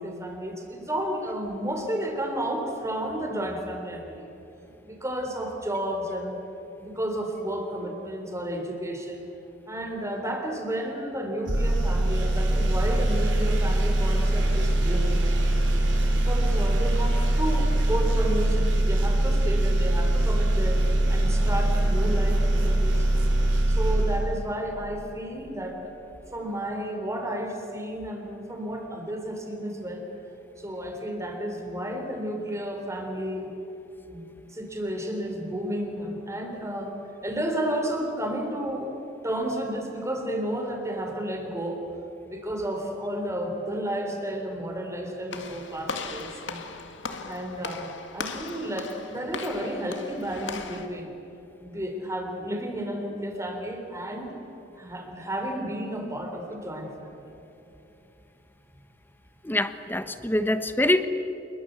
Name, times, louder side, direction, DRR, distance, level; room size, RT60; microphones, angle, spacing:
voice 1, 0.0-4.3 4.8-6.4 6.8-9.3 9.7-15.6 16.1-20.8 21.1-25.8 26.3-30.0 30.6-33.5 34.1-36.9 37.2-38.9 39.2-41.8 42.3-46.6 47.3-51.1 51.6-54.3 54.8-57.3, right 1 dB, 15° right, 3 dB, 3.9 m, -32 dB
sound 1, 11.5-23.6, equal, 30° left, 5.6 m, -41 dB
sound 2, 11.5-24.8, right 1 dB, 85° right, 3.7 m, -23 dB
Walk footsteps / Slam, 45.3-50.9, left 4 dB, 75° left, 2.0 m, -38 dB
voice 2, 59.4-61.1, left 1 dB, 10° left, 10 dB, 1.1 m, -24 dB
27.0 x 22.0 x 8.3 m, 3.0 s
head